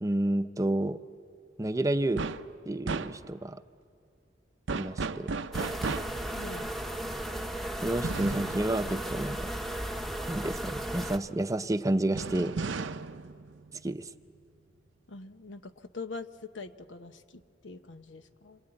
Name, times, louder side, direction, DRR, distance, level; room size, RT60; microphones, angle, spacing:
voice 1, 0.0-1.0 1.6-2.2 2.6-3.6 4.7-5.3 7.8-9.5 10.3-12.5 13.8-14.1, right 1 dB, 20° right, 10 dB, 0.6 m, -30 dB
sound 1, 2.2-2.5 2.9-3.5 4.7-6.3 8.0-9.8 12.2-14.3, right 4 dB, 90° right, 0.7 m, -35 dB
sound 2, 5.5-11.2, right 1 dB, ahead, 0.9 m, -35 dB
voice 2, 6.4-6.7 15.1-18.6, left 3 dB, 85° left, 10 dB, 1.0 m, -43 dB
27.0 x 23.0 x 9.0 m, 2.4 s
head